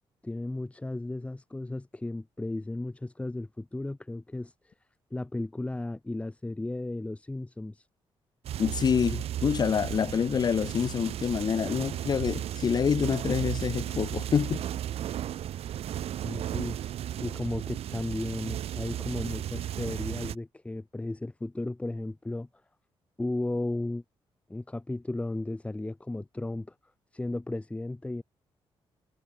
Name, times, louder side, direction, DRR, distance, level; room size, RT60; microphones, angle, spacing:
voice 1, 0.2-4.7 5.1-7.9 16.1-16.8 17.2-22.5 23.2-24.0 24.5-26.7 27.1-28.2, left 2 dB, 10° left, 7.7 m, -35 dB
sound 1, 8.4-20.3, right 11 dB, 85° right, 4.8 m, -34 dB
voice 2, 8.6-14.6, left 7 dB, 45° left, 1.0 m, -27 dB
cardioid pair, 125°, 10 cm